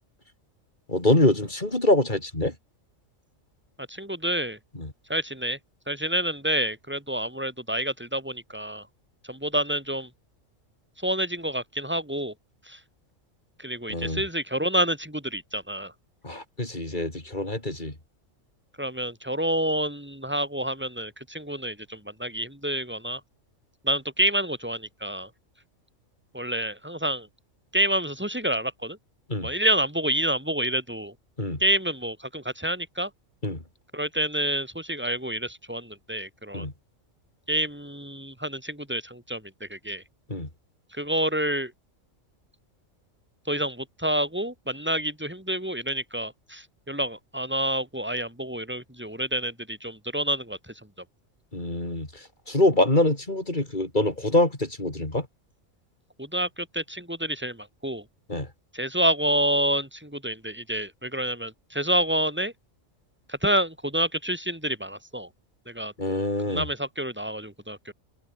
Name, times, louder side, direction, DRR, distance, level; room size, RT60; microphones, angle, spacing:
voice 1, 0.9-2.5 4.7-4.9 13.9-14.2 16.2-17.9 29.3-29.5 31.4-31.6 33.4-33.6 36.5-36.7 40.3-40.5 51.5-55.3 58.3-58.5 66.0-66.6, left 1 dB, 35° left, 5.0 m, -25 dB
voice 2, 3.9-4.6 5.1-5.6 5.9-8.9 9.3-10.1 11.0-12.3 12.7-12.8 13.6-15.9 18.8-23.2 23.8-25.3 26.3-27.3 27.7-29.0 29.4-31.1 31.6-33.1 33.9-36.7 37.5-40.0 41.0-41.7 43.5-50.6 56.2-58.0 58.7-62.5 63.3-65.3 65.7-67.9, right 1 dB, 10° right, 4.3 m, -28 dB
omnidirectional pair, 1.3 m